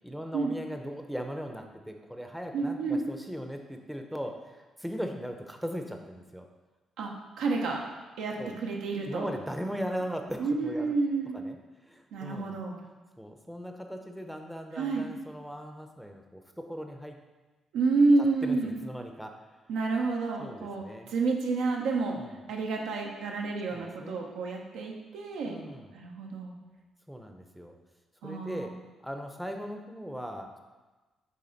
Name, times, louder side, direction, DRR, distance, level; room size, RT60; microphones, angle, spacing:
voice 1, 0.0-6.5 8.4-8.6 9.0-11.0 11.3-12.6 13.2-17.2 18.2-19.4 20.4-21.1 22.2-22.4 23.7-24.2 25.4-26.0 27.1-27.8 28.2-28.8 29.0-30.6, equal, ahead, 4 dB, 0.6 m, -39 dB
voice 2, 2.5-3.0 7.0-7.1 7.4-7.8 8.2-8.4 8.6-9.3 10.4-11.4 12.1-12.8 14.8-15.1 17.7-18.8 19.7-22.2 22.5-25.6 25.9-26.5 28.2-28.7, right 3 dB, 90° right, 0 dB, 0.9 m, -29 dB
7.6 x 3.3 x 4.0 m, 1.2 s
cardioid pair, 90°, 0 cm